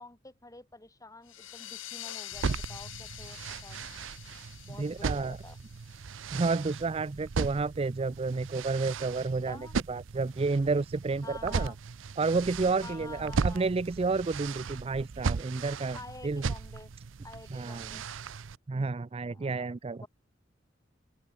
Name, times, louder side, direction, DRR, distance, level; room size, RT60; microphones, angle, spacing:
voice 1, 0.0-3.8 4.6-5.6 9.5-9.7 11.2-11.8 12.8-13.7 15.9-16.9 17.2-18.0 19.3-19.7 20.0-20.1, left 2 dB, 15° left, 4.1 m, -48 dB
sound 1, 1.3-6.6, left 13 dB, 90° left, 2.6 m, -46 dB
sound 2, 2.3-18.6, right 5 dB, 80° right, 0.6 m, -37 dB
voice 2, 4.8-5.4 6.3-9.6 9.9-11.7 12.2-16.0 16.2-16.4 17.5-18.0 18.7-20.1, right 3 dB, 30° right, 0.4 m, -30 dB
open air
head